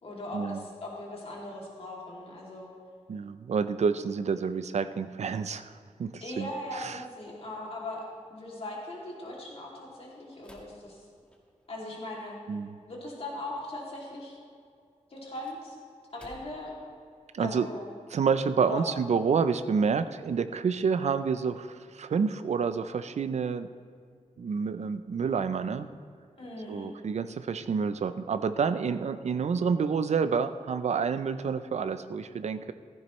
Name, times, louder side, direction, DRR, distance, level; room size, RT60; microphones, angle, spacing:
voice 1, 0.0-2.7 6.2-11.0 11.7-12.4 12.9-14.4 15.1-15.8 16.1-16.7 17.4-17.9 18.6-18.9 26.4-26.9, left 1 dB, 50° left, -3 dB, 2.6 m, -39 dB
voice 2, 3.1-6.5 6.7-7.0 12.5-12.8 17.3-17.7 18.1-23.7 24.4-25.9 26.7-32.7, right 6 dB, 60° right, 11 dB, 0.5 m, -28 dB
sound 1, 10.4-11.8 15.1-16.8, left 1 dB, 10° left, 1.4 m, -55 dB
15.0 x 15.0 x 3.2 m, 2.3 s
wide cardioid pair, 155°, 13 cm